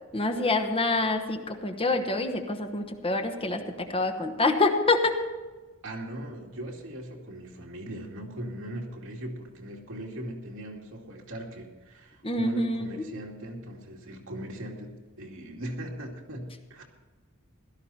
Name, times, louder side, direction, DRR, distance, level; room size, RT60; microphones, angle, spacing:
voice 1, 0.1-5.1 12.2-13.1, left 2 dB, 25° left, 5 dB, 1.1 m, -26 dB
voice 2, 5.8-16.8, right 1 dB, 70° right, -1 dB, 2.6 m, -39 dB
16.5 x 13.0 x 4.3 m, 1.3 s
head